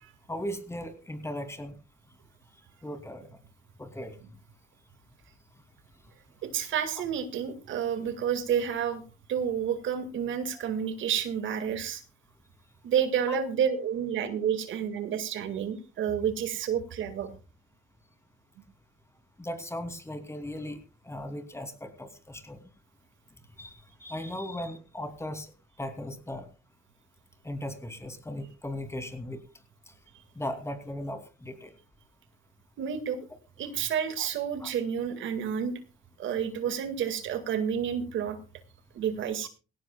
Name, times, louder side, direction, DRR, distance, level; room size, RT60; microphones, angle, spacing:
voice 1, 0.3-1.8 2.8-3.3 3.8-4.1 10.5-10.6 13.3-13.4 19.4-20.8 21.0-22.7 23.6-25.5 25.8-26.5 27.4-29.4 30.4-31.7 34.2-34.3 34.6-34.7, left 1 dB, 15° left, 8 dB, 2.8 m, -37 dB
voice 2, 6.4-9.0 9.3-12.0 12.8-17.3 32.8-33.2 33.6-35.7 36.2-38.4 38.9-39.5, right 8 dB, 75° right, 10 dB, 1.9 m, -30 dB
17.5 x 17.5 x 2.3 m, 0.33 s
cardioid pair, 90°, 20 cm